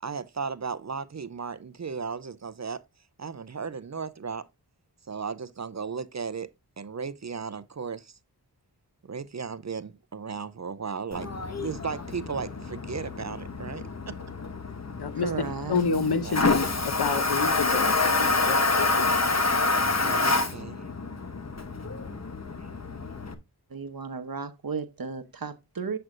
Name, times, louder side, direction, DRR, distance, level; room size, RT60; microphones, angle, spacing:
voice 1, 0.0-2.8 3.2-4.5 5.1-6.5 6.8-8.1 9.0-11.3 11.6-14.1 16.2-16.4 20.0-20.8, right 5 dB, 45° right, 0.5 m, -35 dB
Toilet flush, 11.1-23.3, left 3 dB, 45° left, 1.0 m, -27 dB
voice 2, 15.2-16.3 23.7-26.0, right 5 dB, 65° right, 1.0 m, -34 dB
voice 3, 15.7-19.3, left 6 dB, 90° left, 0.8 m, -29 dB
7.8 x 7.6 x 2.5 m
wide cardioid pair, 60°, 38 cm